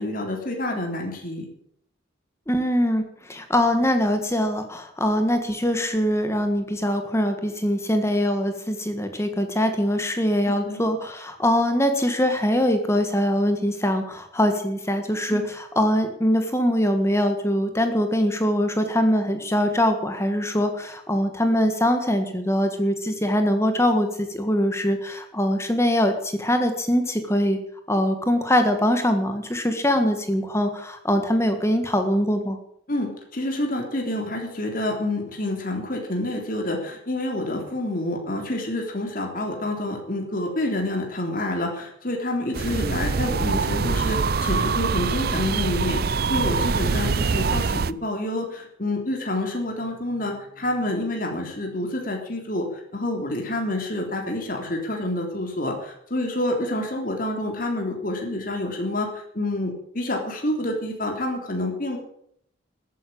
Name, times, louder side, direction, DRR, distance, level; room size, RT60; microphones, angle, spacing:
voice 1, 0.0-1.5 10.4-10.8 15.3-15.5 32.9-62.0, left 1 dB, 45° left, 2 dB, 3.4 m, -28 dB
voice 2, 2.5-27.6 27.9-32.6, equal, 15° left, 7 dB, 1.6 m, -23 dB
sound 1, 42.5-47.9, right 4 dB, 50° right, 0.5 m, -24 dB
14.0 x 9.6 x 8.8 m, 0.70 s
head